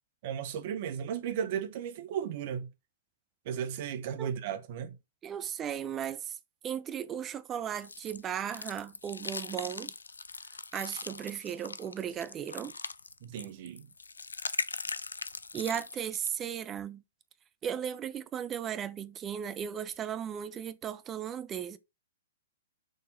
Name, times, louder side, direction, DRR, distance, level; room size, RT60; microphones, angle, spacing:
voice 1, 0.2-2.7 3.4-5.0 13.2-13.9, right 8 dB, 45° right, 1.3 m, -35 dB
voice 2, 5.2-6.4 6.6-9.9 10.7-12.7 15.5-17.0 17.6-21.8, right 9 dB, 20° right, 0.7 m, -36 dB
sound 1, 7.8-16.5, left 4 dB, 75° left, 0.4 m, -40 dB
6.6 x 3.6 x 4.4 m
figure-of-eight pair, 115°, 0 cm